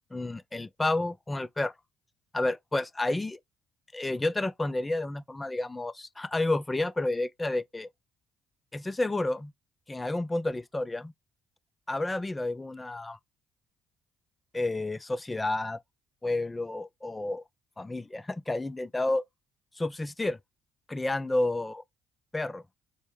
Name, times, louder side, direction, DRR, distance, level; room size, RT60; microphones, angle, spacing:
voice 1, 0.0-1.7 2.3-3.4 3.9-7.9 8.7-9.5 9.9-11.1 11.9-13.2 14.5-15.8 16.2-17.4 17.8-19.2 19.8-20.4 20.9-21.8 22.3-22.6, left 2 dB, 15° left, 0.4 m, -30 dB
4.6 x 2.1 x 3.3 m
cardioid pair, 85°, 0 cm